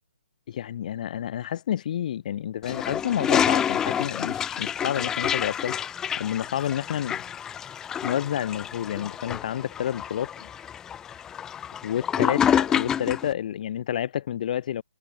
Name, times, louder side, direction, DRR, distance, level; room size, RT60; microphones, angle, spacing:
voice 1, 0.5-5.8 6.2-7.2 8.0-10.5 11.8-14.8, left 10 dB, 40° left, 3.6 m, -29 dB
Toilet flush, 2.6-13.3, left 9 dB, 10° left, 1.1 m, -28 dB
hypercardioid pair, 170°, 7 cm